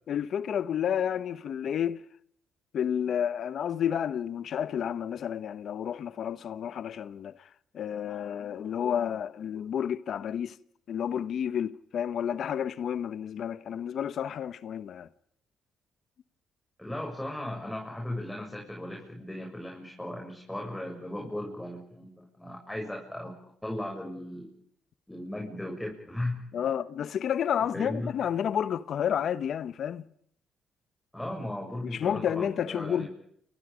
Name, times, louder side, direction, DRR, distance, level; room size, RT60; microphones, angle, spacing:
voice 1, 0.1-2.0 2.7-7.3 7.7-10.5 10.9-15.1 26.5-30.0 31.9-33.1, left 9 dB, 65° left, 1.1 m, -30 dB
voice 2, 16.8-23.3 23.6-24.5 25.1-26.7 27.7-28.1 31.1-33.1, left 1 dB, 5° left, 7.3 m, -37 dB
29.5 x 28.0 x 5.2 m
cardioid pair, 90°, 0 cm